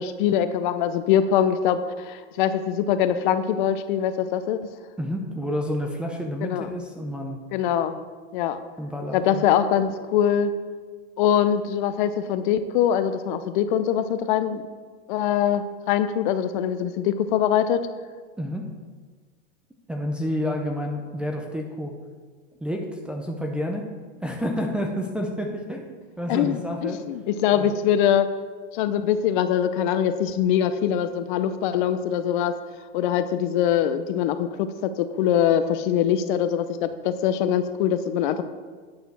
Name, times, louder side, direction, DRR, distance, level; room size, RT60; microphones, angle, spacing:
voice 1, 0.0-4.6 6.4-6.7 7.5-8.0 8.3-8.6 9.1-10.5 11.2-14.6 15.1-17.9 26.3-28.3 28.7-32.6 32.9-38.4, left 9 dB, 50° left, 11 dB, 0.6 m, -23 dB
voice 2, 5.0-7.4 8.8-9.4 18.4-18.7 19.9-21.9 22.6-23.9 24.2-27.0 27.5-27.8, equal, 5° right, 0 dB, 0.4 m, -29 dB
9.4 x 5.0 x 6.0 m, 1.5 s
supercardioid pair, 145°, 31 cm